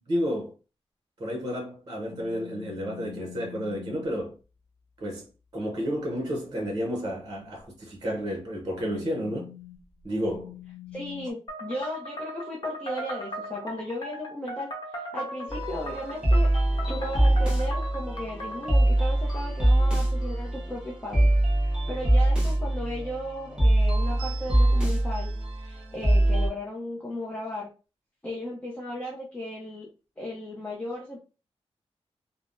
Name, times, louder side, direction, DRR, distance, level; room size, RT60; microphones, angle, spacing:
voice 1, 0.1-0.5 1.2-4.4 5.0-9.5 10.0-10.6, equal, 40° right, 0.7 m, -31 dB
sound 1, 2.1-4.2 7.2-7.6 8.4-11.3, left 15 dB, 85° left, 0.4 m, -45 dB
voice 2, 10.9-16.5 16.9-25.3 25.6-27.7 28.2-29.9 30.2-31.2, left 1 dB, 15° left, 0.6 m, -36 dB
sound 2, 11.5-18.9, equal, 40° left, 0.9 m, -38 dB
sound 3, 15.5-26.5, right 1 dB, 5° right, 1.1 m, -23 dB
3.3 x 2.0 x 2.5 m
wide cardioid pair, 140°, 11 cm